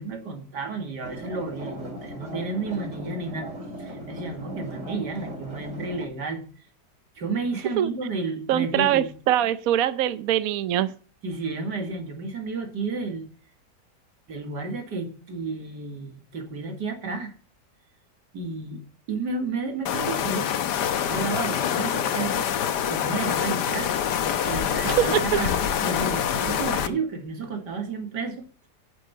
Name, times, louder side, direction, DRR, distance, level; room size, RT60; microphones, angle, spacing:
voice 1, 0.0-3.5 3.8-6.4 7.2-9.1 11.2-13.3 14.3-17.3 18.3-18.8 19.1-20.5 21.0-22.5 22.9-23.9 24.4-28.4, right 3 dB, 80° right, 2.7 m, -32 dB
sound 1, 1.0-6.1, right 1 dB, 50° right, 4.6 m, -37 dB
voice 2, 8.5-10.9 24.8-25.4, right 11 dB, 65° right, 1.0 m, -23 dB
sound 2, 19.9-26.9, left 9 dB, 80° left, 1.5 m, -25 dB
10.5 x 7.6 x 7.1 m
omnidirectional pair, 1.8 m